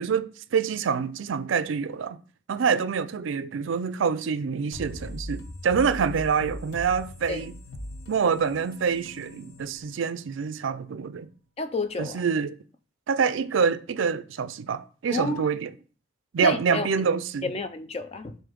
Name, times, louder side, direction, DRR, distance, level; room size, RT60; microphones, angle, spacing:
voice 1, 0.0-2.2 2.5-7.5 8.1-11.3 12.0-12.6 13.1-15.7 16.3-17.5, right 6 dB, 65° right, 0.4 m, -26 dB
sound 1, 4.7-10.4, equal, 70° left, 0.9 m, -40 dB
voice 2, 11.6-12.2 15.1-15.5 16.4-16.9 17.4-18.4, left 3 dB, 30° left, 0.4 m, -30 dB
7.4 x 2.7 x 5.0 m
head